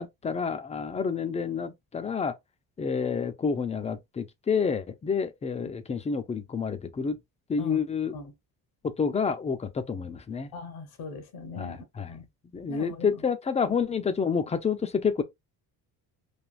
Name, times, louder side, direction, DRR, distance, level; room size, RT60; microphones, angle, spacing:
voice 1, 0.0-2.3 2.8-7.2 7.5-8.1 8.8-10.5 11.6-12.2 12.5-15.2, left 6 dB, 20° left, 0.4 m, -29 dB
voice 2, 10.5-12.3 12.7-13.2 13.7-13.8, left 3 dB, 75° left, 1.1 m, -40 dB
3.3 x 2.4 x 2.4 m
cardioid pair, 115°, 37 cm